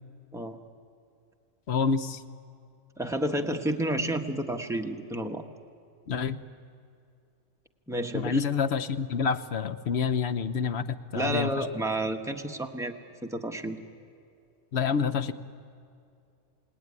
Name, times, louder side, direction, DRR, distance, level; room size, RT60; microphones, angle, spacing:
voice 1, 1.7-2.2 6.1-6.4 8.1-11.6 14.7-15.3, left 6 dB, 60° left, 12 dB, 1.1 m, -28 dB
voice 2, 3.0-5.4 7.9-8.4 11.1-13.0 13.2-13.8, right 1 dB, 5° right, 3 dB, 1.2 m, -30 dB
28.5 x 18.5 x 9.7 m, 2.4 s
omnidirectional pair, 1.3 m